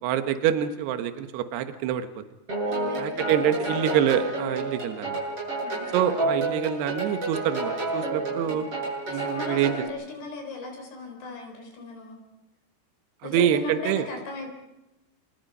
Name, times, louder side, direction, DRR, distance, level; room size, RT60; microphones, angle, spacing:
voice 1, 0.0-2.2 3.0-5.2 5.9-8.7 9.1-9.7 13.2-14.0, right 10 dB, 80° right, 9 dB, 3.3 m, -26 dB
sound 1, 2.5-9.9, right 2 dB, 35° right, 8.5 m, -30 dB
voice 2, 2.6-3.8 5.6-5.9 8.4-8.6 9.1-12.2 13.2-14.5, left 3 dB, 75° left, 3 dB, 6.3 m, -38 dB
29.0 x 26.0 x 5.5 m, 0.98 s
omnidirectional pair, 4.7 m